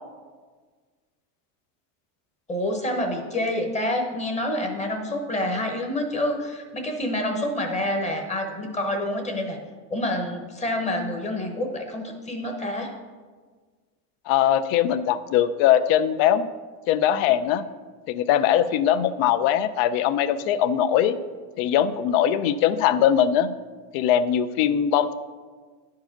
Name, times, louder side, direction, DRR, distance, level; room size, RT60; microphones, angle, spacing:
voice 1, 2.5-9.6 9.9-13.0, left 1 dB, 15° left, 3 dB, 0.9 m, -27 dB
voice 2, 14.3-16.5 16.9-17.6 18.1-21.2 21.6-23.5 23.9-25.1, left 10 dB, 55° left, 14 dB, 0.6 m, -21 dB
10.5 x 4.8 x 5.9 m, 1.5 s
supercardioid pair, 145°, 47 cm